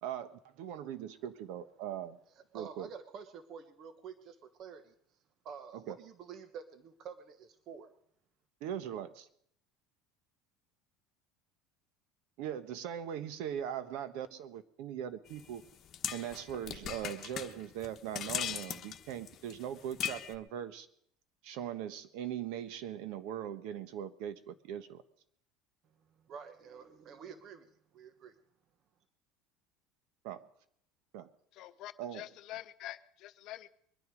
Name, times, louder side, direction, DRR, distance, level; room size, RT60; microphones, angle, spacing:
voice 1, 0.0-2.2 2.5-2.9 5.7-6.0 8.6-9.3 12.4-15.6 16.1-20.9 21.4-25.0 30.2-30.5 31.1-31.3 32.0-32.2, right 10 dB, 75° right, 12 dB, 1.2 m, -40 dB
voice 2, 2.4-4.9 5.4-7.9 26.2-27.7 27.9-28.3, right 6 dB, 50° right, 9 dB, 1.3 m, -49 dB
sound 1, 15.3-20.4, left 10 dB, 40° left, 1.3 m, -39 dB
voice 3, 31.5-33.7, left 14 dB, 60° left, 12 dB, 0.9 m, -46 dB
22.5 x 9.9 x 5.2 m, 0.67 s
supercardioid pair, 120°, 0 cm